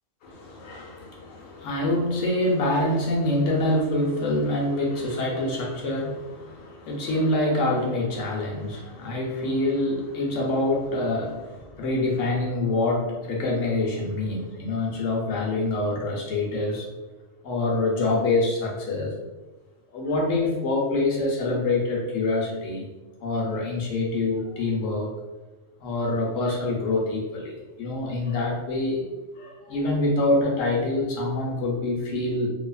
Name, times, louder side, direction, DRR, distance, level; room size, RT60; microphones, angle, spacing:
voice 1, 0.2-16.9 17.4-19.1 19.9-22.9 23.2-25.1 25.8-29.0 29.4-32.5, left 2 dB, 85° left, -2 dB, 1.0 m, -26 dB
2.7 x 2.4 x 2.3 m, 1.2 s
omnidirectional pair, 1.3 m